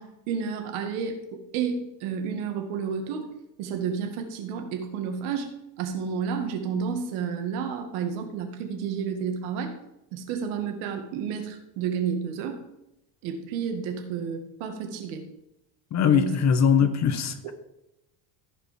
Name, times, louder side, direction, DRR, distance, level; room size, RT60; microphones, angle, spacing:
voice 1, 0.0-3.3 3.6-5.5 5.8-9.7 10.1-12.6 13.2-15.3 16.1-16.4 16.8-16.9, right 6 dB, 75° right, 5 dB, 2.1 m, -31 dB
voice 2, 15.9-17.5, left 7 dB, 35° left, 10 dB, 1.1 m, -21 dB
15.5 x 5.3 x 5.1 m, 0.88 s
cardioid pair, 140°, 49 cm